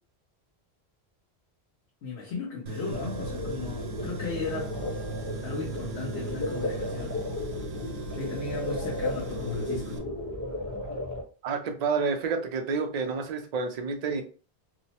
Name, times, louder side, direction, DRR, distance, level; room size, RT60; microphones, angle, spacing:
voice 1, 2.0-4.8 5.4-7.3 8.1-10.1, left 3 dB, 90° left, 1.0 m, -36 dB
Tools, 2.7-10.0, right 2 dB, 75° right, 0.8 m, -38 dB
sound 1, 2.9-11.2, left 2 dB, 15° left, 0.8 m, -34 dB
voice 2, 11.4-14.2, right 5 dB, 55° right, 0.5 m, -29 dB
2.9 x 2.0 x 2.7 m
omnidirectional pair, 1.1 m